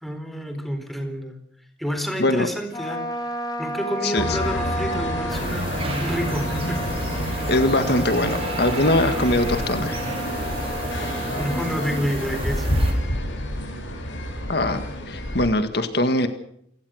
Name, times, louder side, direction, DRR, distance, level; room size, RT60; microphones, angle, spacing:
voice 1, 0.0-1.4 1.8-3.2 3.6-6.8 7.3-7.5 11.4-12.7, equal, ahead, 6 dB, 4.2 m, -29 dB
Trumpet, 2.7-12.0, equal, 20° left, 4.4 m, -33 dB
voice 2, 4.0-4.4 7.5-10.0 14.5-16.3, left 1 dB, 55° left, 8 dB, 1.8 m, -22 dB
sound 1, 4.2-15.5, equal, 75° left, 7.9 m, -28 dB
sound 2, 5.3-12.9, right 2 dB, 30° right, 5.7 m, -33 dB
29.0 x 17.5 x 6.5 m, 0.73 s
head